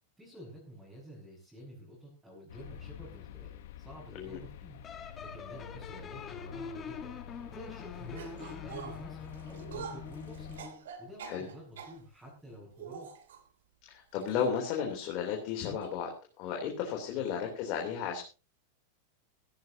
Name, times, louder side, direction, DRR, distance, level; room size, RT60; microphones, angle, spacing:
voice 1, 0.2-3.5 3.8-10.6 11.0-13.1 17.1-17.3, equal, 5° right, -7 dB, 6.1 m, -50 dB
sound 1, 2.5-10.6, left 10 dB, 60° left, 1.3 m, -48 dB
sound 2, 4.8-10.9, left 6 dB, 15° left, 1.6 m, -45 dB
sound 3, 8.1-12.0 12.8-13.4 14.2-14.5 14.8-14.9 15.8-15.9, right 7 dB, 90° right, 3.2 m, -46 dB
voice 2, 13.8-16.1 16.4-18.2, left 7 dB, 35° left, 1 dB, 3.5 m, -34 dB
17.0 x 16.5 x 2.9 m, 0.33 s
supercardioid pair, 170°, 0 cm